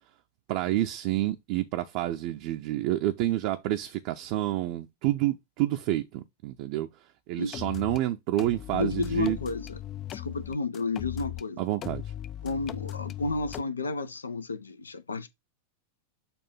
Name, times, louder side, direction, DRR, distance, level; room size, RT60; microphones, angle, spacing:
voice 1, 0.5-6.9 7.3-9.4 11.6-12.1, right 14 dB, 50° right, 0.6 m, -29 dB
sound 1, 7.5-8.0 8.4-11.4 11.8-13.6, left 12 dB, 35° left, 0.4 m, -38 dB
voice 2, 8.7-9.8 10.1-11.7 12.4-15.3, left 3 dB, 85° left, 0.7 m, -32 dB
6.9 x 2.6 x 5.5 m
hypercardioid pair, 95°, 0 cm